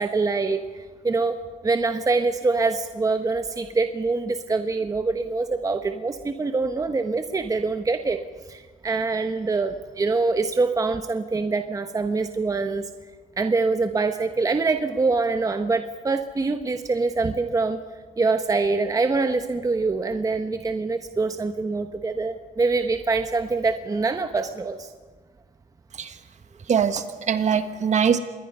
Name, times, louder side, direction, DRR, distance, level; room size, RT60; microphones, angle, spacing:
voice 1, 0.0-1.4 1.6-8.2 8.5-12.9 13.4-17.8 18.2-24.9, right 3 dB, 20° right, 7 dB, 1.1 m, -24 dB
voice 2, 26.7-28.2, right 7 dB, 45° right, 9 dB, 1.6 m, -22 dB
27.0 x 21.0 x 5.6 m, 1.4 s
cardioid pair, 110°, 17 cm